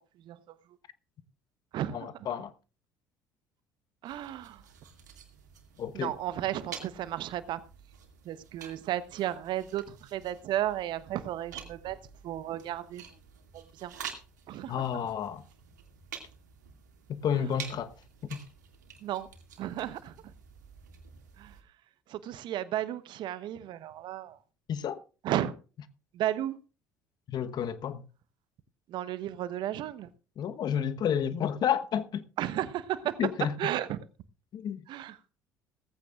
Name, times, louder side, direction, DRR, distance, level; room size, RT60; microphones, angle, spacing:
voice 1, 1.9-2.5 5.8-6.1 14.7-15.4 17.1-17.9 18.2-18.4 24.7-25.0 27.3-28.0 30.4-32.2 33.2-33.7 34.5-34.8, left 8 dB, 45° left, 1.1 m, -31 dB
voice 2, 4.0-4.6 5.9-7.6 8.3-12.0 12.2-13.0 13.5-13.9 14.5-14.8 19.0-19.3 19.6-20.1 21.4-21.5 22.1-24.4 25.2-25.5 26.1-26.5 28.9-30.1 32.4-33.2 33.6-34.0 34.9-35.1, right 12 dB, 55° right, 1.0 m, -33 dB
sound 1, 4.0-21.6, right 7 dB, 80° right, 2.3 m, -49 dB
17.0 x 15.0 x 2.5 m
figure-of-eight pair, 60°, 9 cm